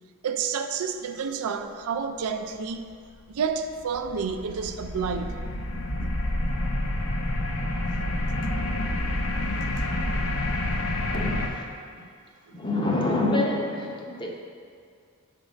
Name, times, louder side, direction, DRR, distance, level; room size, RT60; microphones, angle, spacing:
voice 1, 0.2-2.9 3.3-5.4 6.0-6.2, right 6 dB, 90° right, 8 dB, 0.4 m, -30 dB
sound 1, 3.1-11.5, left 1 dB, 80° left, 0.7 m, -28 dB
voice 2, 11.1-11.7 12.0-12.1 12.5-14.3, left 2 dB, 20° left, -1 dB, 0.6 m, -27 dB
7.3 x 3.6 x 5.1 m, 2.2 s
head